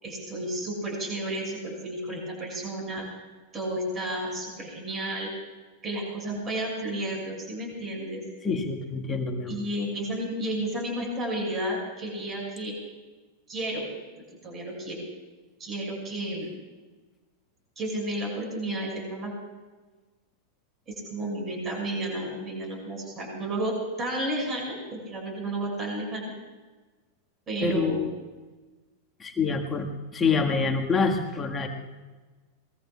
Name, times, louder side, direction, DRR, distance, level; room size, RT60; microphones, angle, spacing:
voice 1, 0.0-3.0 3.5-5.3 5.8-8.2 9.5-12.8 13.5-13.9 14.4-15.0 15.6-16.5 17.8-19.3 20.9-26.3 27.5-28.0, right 1 dB, 25° right, -1 dB, 6.2 m, -32 dB
voice 2, 8.4-9.6 27.6-28.1 29.2-31.7, left 4 dB, 20° left, 2 dB, 1.8 m, -26 dB
23.0 x 20.5 x 2.5 m, 1.3 s
figure-of-eight pair, 90°, 0 cm